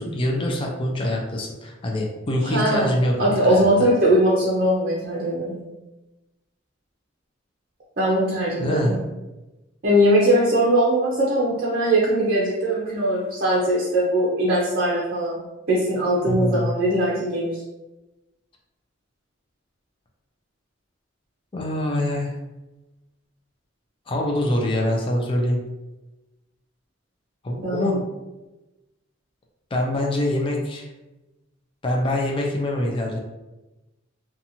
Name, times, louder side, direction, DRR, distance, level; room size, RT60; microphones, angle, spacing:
voice 1, 0.0-3.9 8.1-8.2 8.6-9.0 16.2-16.7 21.5-22.4 24.1-25.6 27.4-28.1 29.7-30.9 31.8-33.2, left 1 dB, 25° left, 0 dB, 0.4 m, -24 dB
voice 2, 2.4-2.9 3.2-5.6 8.0-9.0 9.8-15.4 15.7-17.6 27.6-28.0, right 1 dB, 50° right, -6 dB, 0.6 m, -21 dB
2.8 x 2.3 x 2.6 m, 1.0 s
head